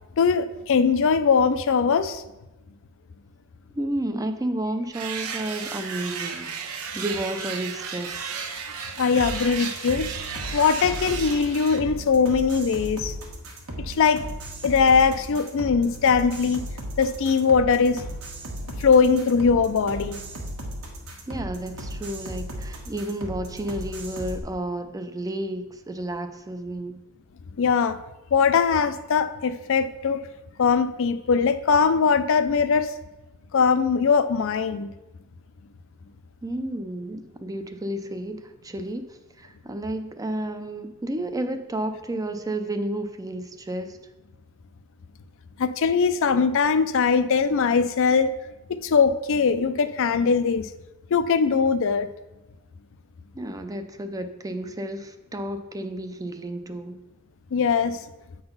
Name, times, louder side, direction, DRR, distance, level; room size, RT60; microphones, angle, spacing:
voice 1, 0.2-2.2 9.0-10.1 10.5-13.1 13.9-14.2 14.6-16.6 17.0-18.0 18.8-20.2 27.6-28.0 28.3-30.3 30.6-32.9 33.5-34.9 45.6-48.3 48.7-50.7 51.1-52.1 57.5-58.0, left 5 dB, 65° left, 12 dB, 0.4 m, -21 dB
voice 2, 3.8-6.5 6.9-8.3 21.3-26.9 36.4-44.0 53.3-57.0, right 1 dB, 15° right, 8 dB, 0.4 m, -31 dB
sound 1, 4.9-11.8, right 6 dB, 90° right, 0.8 m, -34 dB
sound 2, 9.2-24.4, right 1 dB, 70° right, 1.4 m, -36 dB
7.8 x 3.9 x 5.5 m, 0.98 s
head